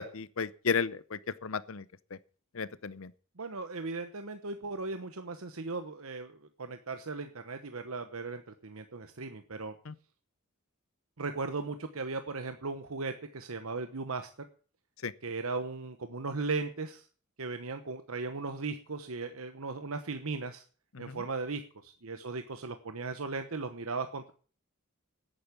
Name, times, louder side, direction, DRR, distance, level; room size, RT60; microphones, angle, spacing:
voice 1, 0.0-1.8 2.6-3.1 9.9-10.0 15.0-15.1, left 5 dB, 65° left, 0.7 m, -33 dB
voice 2, 3.4-9.8 11.2-14.5 15.2-17.1 17.4-20.6 21.0-24.3, right 3 dB, 75° right, 1.0 m, -37 dB
10.5 x 9.5 x 8.3 m
head